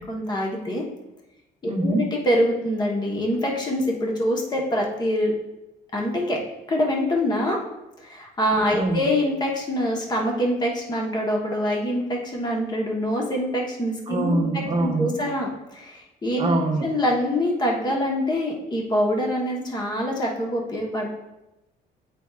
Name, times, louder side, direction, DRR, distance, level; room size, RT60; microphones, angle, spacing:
voice 1, 0.1-0.8 1.6-5.3 5.9-6.4 6.7-7.6 8.0-16.5 16.8-21.1, equal, 25° left, -1 dB, 1.2 m, -25 dB
voice 2, 1.7-2.0 8.7-9.0 14.1-15.1 16.4-16.8, right 2 dB, 30° right, 1 dB, 1.0 m, -23 dB
8.2 x 5.2 x 2.4 m, 0.96 s
cardioid pair, 110°, 17 cm